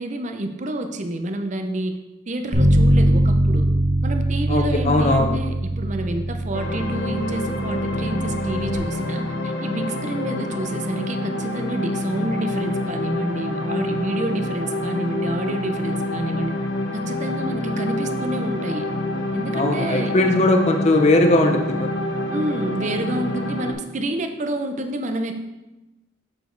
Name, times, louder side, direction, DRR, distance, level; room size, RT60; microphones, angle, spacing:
voice 1, 0.0-2.0 2.3-3.7 4.0-16.5 16.9-18.9 19.3-20.4 22.3-25.4, right 1 dB, 40° right, 6 dB, 0.6 m, -28 dB
Bass guitar, 2.5-8.8, right 1 dB, 75° right, 1.7 m, -21 dB
voice 2, 4.5-5.4 19.5-21.9, left 2 dB, 35° left, 4 dB, 0.5 m, -19 dB
sound 1, 6.5-23.7, left 1 dB, 75° left, 0.9 m, -27 dB
7.3 x 4.9 x 3.9 m, 1.0 s
head